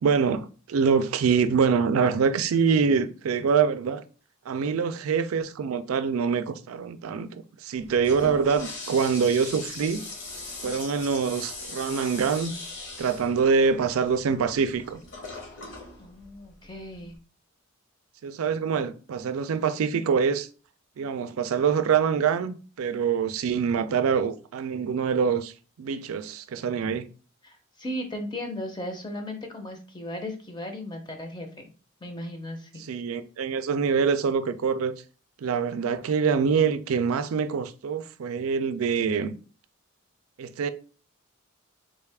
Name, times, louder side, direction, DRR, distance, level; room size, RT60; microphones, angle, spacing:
voice 1, 0.0-4.0 4.5-10.0 10.6-12.5 13.0-15.0 18.2-20.5 21.0-25.5 25.8-27.1 32.8-34.9 35.4-39.4 40.4-40.7, right 6 dB, 85° right, 0.4 m, -25 dB
Toilet flush, 7.8-17.2, left 3 dB, 55° left, 1.0 m, -40 dB
voice 2, 16.0-17.2 27.4-31.7 32.0-32.8, left 1 dB, 20° left, 0.6 m, -36 dB
3.6 x 2.4 x 3.3 m
head